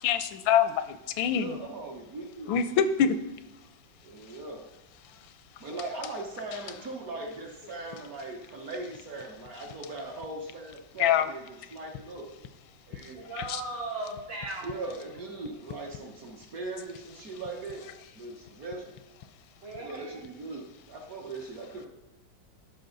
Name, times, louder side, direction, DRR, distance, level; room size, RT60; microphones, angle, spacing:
voice 1, 0.0-1.5 2.5-3.1 11.0-11.3 13.5-13.6, left 8 dB, 80° left, 12 dB, 1.4 m, -24 dB
voice 2, 1.3-2.7 4.0-4.7 5.6-12.3 12.9-13.2 14.6-17.9 18.1-18.9 19.8-21.9, right 2 dB, 50° right, 1 dB, 1.4 m, -39 dB
voice 3, 13.2-14.8 19.6-20.2, right 2 dB, 70° right, -6 dB, 3.8 m, -37 dB
12.5 x 5.5 x 3.9 m, 1.0 s
omnidirectional pair, 2.2 m